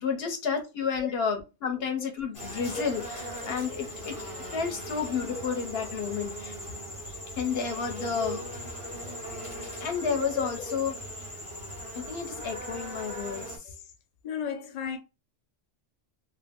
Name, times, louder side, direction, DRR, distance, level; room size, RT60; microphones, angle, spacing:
voice 1, 0.0-3.0 3.4-4.1 4.5-6.5 7.4-8.4 9.8-10.9 11.9-13.6, left 6 dB, 55° left, 0.9 m, -31 dB
sound 1, 2.3-13.6, equal, 30° left, 0.8 m, -39 dB
voice 2, 5.8-6.2 7.5-7.6 8.0-8.4 10.0-10.8 13.6-13.8 14.2-15.0, left 5 dB, 75° left, 0.3 m, -36 dB
2.5 x 2.0 x 3.5 m
omnidirectional pair, 1.3 m